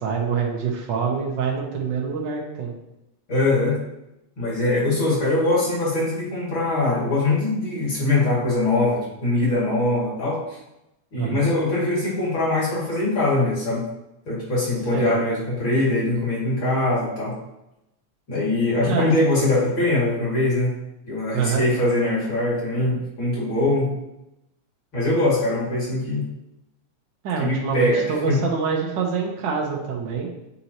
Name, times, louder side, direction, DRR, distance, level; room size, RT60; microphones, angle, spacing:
voice 1, 0.0-2.7 11.2-11.4 14.9-15.1 18.9-19.1 21.3-21.7 27.2-30.3, right 6 dB, 70° right, -1 dB, 1.1 m, -25 dB
voice 2, 3.3-3.8 4.4-10.6 11.1-13.8 14.3-17.3 18.3-20.8 21.1-23.9 24.9-26.2 27.4-28.4, left 2 dB, 45° left, -6 dB, 2.9 m, -22 dB
9.2 x 4.0 x 2.9 m, 0.88 s
omnidirectional pair, 3.3 m